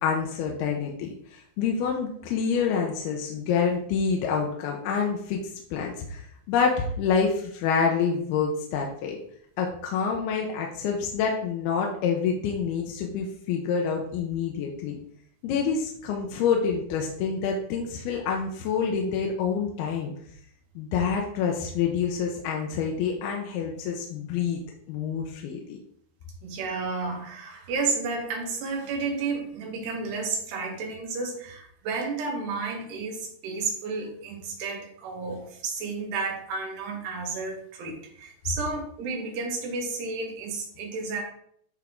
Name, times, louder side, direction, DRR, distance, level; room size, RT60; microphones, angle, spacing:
voice 1, 0.0-5.4 5.7-9.2 9.6-15.0 15.4-20.1 20.8-24.6 24.9-25.8, left 6 dB, 75° left, 0 dB, 2.6 m, -27 dB
voice 2, 26.4-41.2, right 4 dB, 80° right, 1 dB, 3.4 m, -32 dB
10.0 x 3.6 x 3.6 m, 0.65 s
omnidirectional pair, 4.9 m